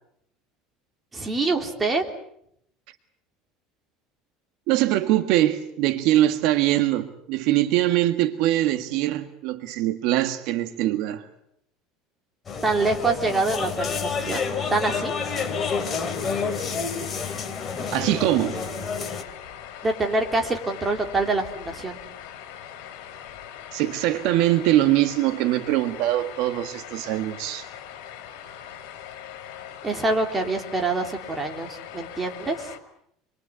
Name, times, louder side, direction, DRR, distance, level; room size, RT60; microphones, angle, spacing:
voice 1, 1.1-2.0 12.6-14.4 14.7-15.1 19.8-22.0 29.8-32.7, right 3 dB, 15° right, 3.3 m, -25 dB
voice 2, 4.7-11.2 17.9-18.6 23.7-27.6, right 14 dB, 60° right, 1.7 m, -22 dB
sound 1, 12.5-19.2, left 5 dB, 20° left, 3.0 m, -29 dB
sound 2, 14.5-32.8, left 10 dB, 70° left, 4.6 m, -41 dB
28.0 x 23.0 x 8.3 m
cardioid pair, 160°, 0 cm